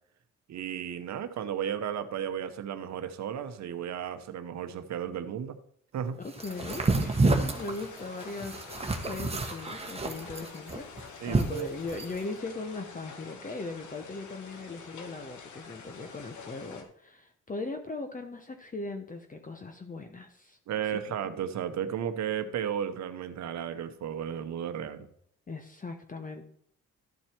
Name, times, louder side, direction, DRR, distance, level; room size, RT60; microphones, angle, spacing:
voice 1, 0.5-5.6 5.9-6.2 11.2-11.7 20.7-25.1, right 9 dB, 65° right, 9 dB, 1.0 m, -34 dB
voice 2, 6.2-20.6 20.9-21.0 25.5-26.4, left 3 dB, 25° left, 6 dB, 1.0 m, -39 dB
sound 1, 6.3-16.8, left 5 dB, 75° left, 1.5 m, -47 dB
sound 2, 6.4-12.2, right 2 dB, 20° right, 1.3 m, -29 dB
13.0 x 4.4 x 4.4 m, 0.67 s
cardioid pair, 90°, 30 cm